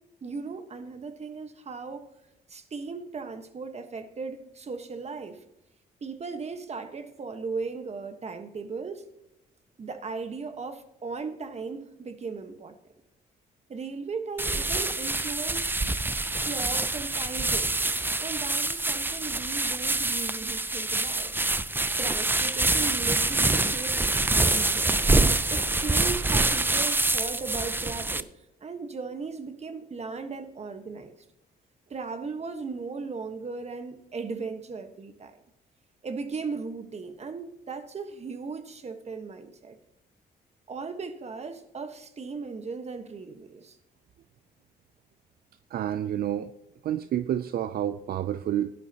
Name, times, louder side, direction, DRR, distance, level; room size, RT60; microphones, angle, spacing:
voice 1, 0.2-2.1 2.5-5.4 6.0-9.0 9.8-12.8 13.7-15.7 16.4-17.8 18.2-21.3 21.7-25.0 25.5-28.3 28.6-31.2 31.9-35.4 36.0-39.8 40.7-43.8, right 4 dB, 40° right, 1.3 m, -37 dB
sound 1, 14.4-28.2, right 2 dB, 10° right, 0.5 m, -26 dB
voice 2, 45.7-46.5 46.8-48.7, right 11 dB, 65° right, 0.5 m, -29 dB
16.5 x 11.0 x 2.9 m
cardioid pair, 85°, 17 cm